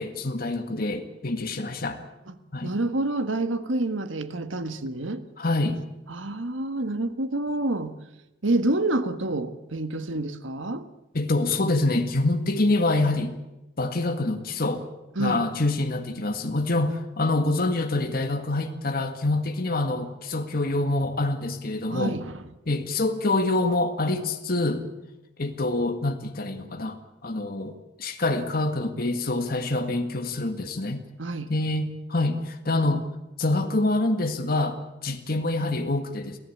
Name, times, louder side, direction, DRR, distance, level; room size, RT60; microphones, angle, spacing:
voice 1, 0.0-2.0 2.5-2.7 5.4-5.8 11.1-13.3 13.8-14.9 15.2-22.2 22.7-24.8 25.4-27.0 27.2-27.7 28.0-31.0 31.5-33.1 33.4-36.4, left 2 dB, 50° left, 6 dB, 1.8 m, -26 dB
voice 2, 2.6-5.2 6.1-7.9 8.4-10.8 15.1-15.4 21.9-22.5 31.2-31.5, right 2 dB, 80° right, 10 dB, 1.6 m, -28 dB
23.5 x 15.5 x 8.6 m, 0.98 s
head